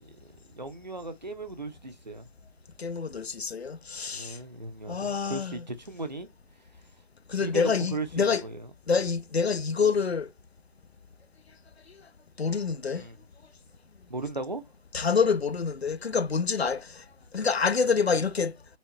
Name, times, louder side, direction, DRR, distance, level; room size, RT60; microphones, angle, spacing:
voice 1, 0.0-2.3 4.1-6.3 7.4-8.7 13.0-13.2 14.1-14.6, right 2 dB, 45° right, 0.7 m, -37 dB
voice 2, 2.8-4.4 4.9-5.6 7.3-8.4 8.9-10.3 12.4-13.1 14.9-17.0 17.3-18.5, left 5 dB, 90° left, 0.6 m, -27 dB
4.2 x 2.2 x 2.7 m
figure-of-eight pair, 170°, 31 cm